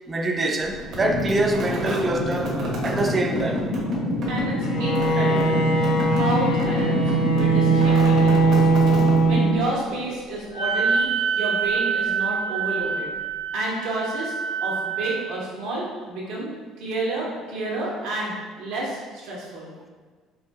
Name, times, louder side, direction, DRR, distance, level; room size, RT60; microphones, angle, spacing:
voice 1, 0.1-3.7, right 2 dB, 20° right, 0.3 m, -25 dB
sound 1, 0.8-9.8, equal, 55° right, 0.9 m, -27 dB
voice 2, 4.3-8.8 9.2-11.1 11.3-13.1 13.5-14.4 14.6-16.5 16.8-19.7, right 2 dB, 80° right, 1.1 m, -30 dB
Bowed string instrument, 4.6-10.0, right 3 dB, 70° left, 0.5 m, -20 dB
Wind instrument woodwind instrument, 10.5-15.2, right 6 dB, 90° left, 1.2 m, -26 dB
4.5 x 2.7 x 2.3 m
cardioid pair, 155°, 0 cm